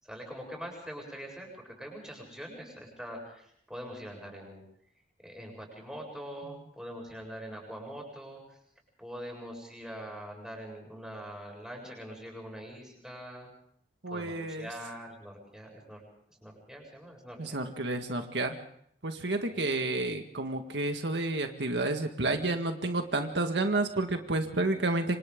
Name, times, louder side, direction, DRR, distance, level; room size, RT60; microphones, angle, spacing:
voice 1, 0.0-4.6 5.2-8.6 9.0-13.5 14.1-16.0 16.3-17.6 19.5-19.6, equal, 5° right, 0 dB, 7.9 m, -43 dB
voice 2, 14.0-14.7 17.4-18.6 19.0-25.2, right 2 dB, 85° right, 5 dB, 1.8 m, -30 dB
28.0 x 25.5 x 3.9 m, 0.68 s
head